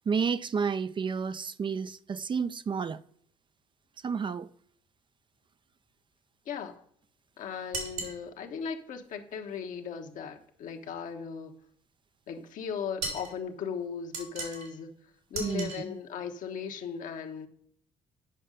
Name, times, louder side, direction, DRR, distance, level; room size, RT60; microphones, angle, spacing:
voice 1, 0.1-3.0 4.0-4.5 15.4-15.7, right 6 dB, 35° right, 0.4 m, -30 dB
voice 2, 6.4-6.8 7.4-11.6 12.3-14.9 15.3-17.5, left 6 dB, 65° left, 1.2 m, -37 dB
Stick dropped onto concrete, 7.7-8.2 13.0-13.3 14.1-14.7 15.3-15.8, right 3 dB, 85° right, 3.0 m, -36 dB
8.8 x 5.4 x 5.2 m
supercardioid pair, 65°, 15 cm